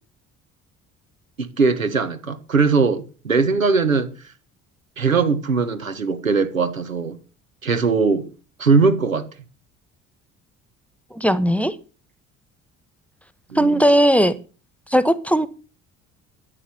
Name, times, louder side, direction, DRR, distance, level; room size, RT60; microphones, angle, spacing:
voice 1, 1.4-4.1 5.0-7.2 7.6-8.3 8.6-9.3 13.5-13.8, right 4 dB, 85° right, 1.3 m, -20 dB
voice 2, 11.1-11.7 13.5-14.3 14.9-15.5, equal, 5° left, 1.2 m, -17 dB
13.5 x 9.7 x 6.8 m
figure-of-eight pair, 50°, 39 cm